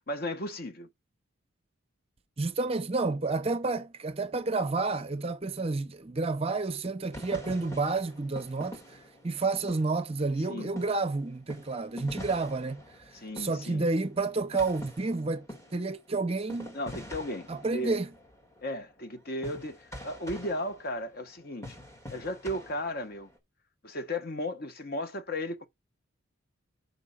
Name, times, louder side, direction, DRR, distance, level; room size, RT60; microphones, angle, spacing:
voice 1, 0.1-0.9 10.5-10.7 13.1-13.9 16.7-18.0 18.6-21.8 22.1-23.3 23.8-25.7, left 1 dB, 45° left, 1.1 m, -35 dB
voice 2, 2.4-9.0 9.2-12.8 13.4-15.5 15.7-16.8 17.5-18.1, right 3 dB, 30° right, 0.6 m, -30 dB
sound 1, 7.1-10.5 10.8-23.4, equal, 15° left, 1.8 m, -46 dB
6.1 x 5.4 x 5.5 m
head